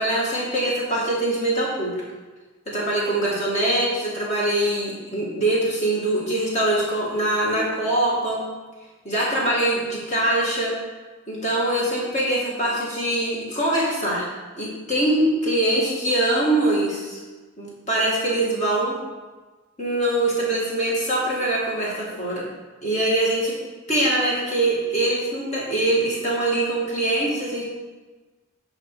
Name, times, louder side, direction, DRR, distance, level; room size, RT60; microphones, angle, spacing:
voice 1, 0.0-2.0 2.7-8.4 9.0-10.7 11.3-14.3 14.5-17.2 17.6-19.0 19.8-22.5 22.8-23.5 23.9-27.6, right 1 dB, 35° left, -5 dB, 2.2 m, -23 dB
9.1 x 4.8 x 5.0 m, 1.3 s
head